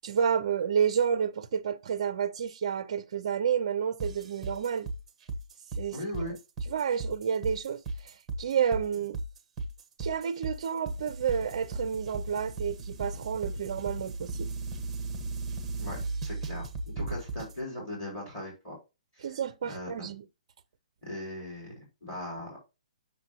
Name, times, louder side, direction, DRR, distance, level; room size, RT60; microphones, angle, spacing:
voice 1, 0.0-4.9 5.8-6.0 6.7-9.2 10.0-14.5 19.2-20.2, right 7 dB, 35° right, 0.5 m, -30 dB
sound 1, 4.0-17.6, right 2 dB, 10° right, 1.0 m, -36 dB
voice 2, 5.9-6.4 15.8-16.0 16.2-16.6 17.0-18.8 19.1-19.3 19.6-20.1 21.0-22.6, left 1 dB, 15° left, 4.0 m, -39 dB
7.1 x 6.0 x 2.9 m
hypercardioid pair, 180°, 4 cm